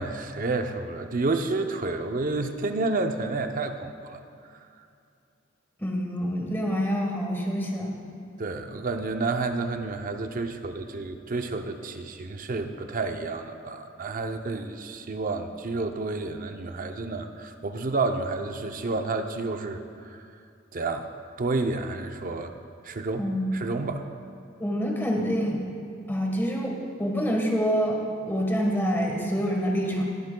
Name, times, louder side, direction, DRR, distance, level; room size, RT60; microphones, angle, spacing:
voice 1, 0.0-4.2 8.4-20.3 20.7-21.1 21.4-22.5 22.8-24.1, right 3 dB, 45° right, 7 dB, 0.6 m, -30 dB
voice 2, 5.8-7.9 23.2-23.4 24.6-25.6 26.1-30.0, equal, 10° left, 0 dB, 1.3 m, -26 dB
20.0 x 8.2 x 2.2 m, 2.5 s
head